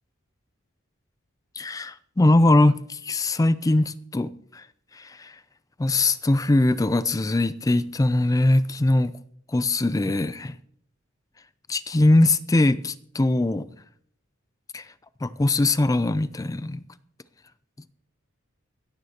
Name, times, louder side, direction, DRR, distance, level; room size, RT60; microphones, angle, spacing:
voice 1, 1.6-4.7 4.9-5.4 5.8-9.1 9.5-10.6 11.7-13.7 14.7-14.8 15.2-16.8, left 2 dB, 15° left, 0.4 m, -21 dB
16.0 x 14.0 x 2.9 m
head